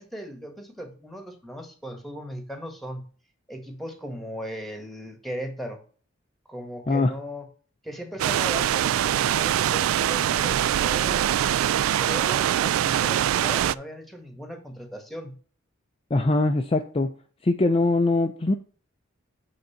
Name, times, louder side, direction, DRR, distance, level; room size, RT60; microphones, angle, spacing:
voice 1, 0.0-3.0 3.5-5.8 6.5-7.4 7.8-11.3 12.0-15.3, equal, ahead, 1.6 m, -37 dB
sound 1, 8.2-13.7, right 11 dB, 80° right, 0.3 m, -23 dB
voice 2, 16.1-17.1 17.4-18.5, left 2 dB, 30° left, 0.5 m, -22 dB
8.0 x 3.9 x 5.7 m
head